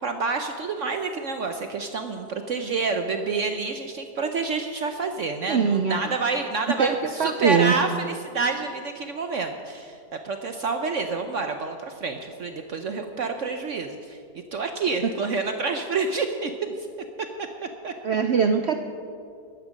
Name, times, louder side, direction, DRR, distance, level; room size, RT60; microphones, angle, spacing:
voice 1, 0.0-14.2 14.5-16.9 17.4-17.9, right 4 dB, 60° right, 6 dB, 0.9 m, -28 dB
voice 2, 5.5-6.0 6.8-6.9 7.2-7.7 18.0-18.8, right 6 dB, 85° right, 6 dB, 0.5 m, -21 dB
13.5 x 10.5 x 6.3 m, 2.4 s
omnidirectional pair, 1.9 m